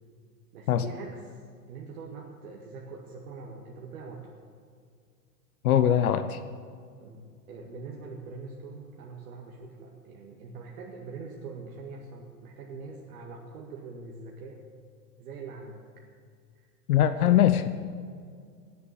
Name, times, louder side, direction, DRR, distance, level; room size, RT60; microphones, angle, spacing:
voice 1, 0.5-1.4 1.7-4.3 7.0-14.6 15.2-15.8 16.5-16.7 17.0-17.5, right 4 dB, 60° right, -1 dB, 2.0 m, -43 dB
voice 2, 5.6-6.4 16.9-17.7, left 10 dB, 65° left, 11 dB, 0.9 m, -21 dB
18.0 x 7.6 x 8.4 m, 2.1 s
figure-of-eight pair, 100°, 48 cm